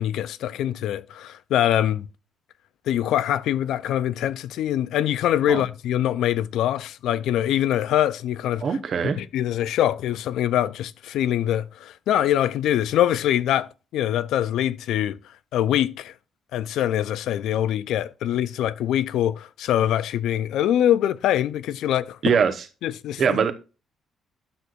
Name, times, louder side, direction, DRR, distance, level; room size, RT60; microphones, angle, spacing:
voice 1, 0.0-2.1 2.9-8.6 9.0-15.2 15.5-16.1 16.5-22.2 22.8-23.4, left 11 dB, 85° left, 0.4 m, -24 dB
voice 2, 8.6-9.2 22.2-22.5 23.2-23.5, right 6 dB, 50° right, 0.9 m, -21 dB
12.0 x 6.2 x 2.4 m
cardioid pair, 125°, 0 cm